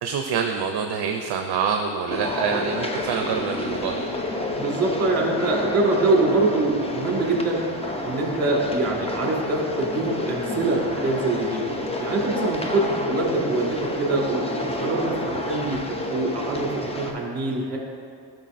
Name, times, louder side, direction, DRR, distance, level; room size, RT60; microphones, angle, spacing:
voice 1, 0.0-4.0, right 6 dB, 60° right, 4 dB, 0.6 m, -26 dB
sound 1, 2.1-17.1, left 2 dB, 15° left, 0.6 m, -30 dB
voice 2, 4.6-7.6 8.0-11.6 12.0-17.8, right 2 dB, 35° right, -1 dB, 1.8 m, -24 dB
12.5 x 6.1 x 2.5 m, 2.4 s
cardioid pair, 110°, 45 cm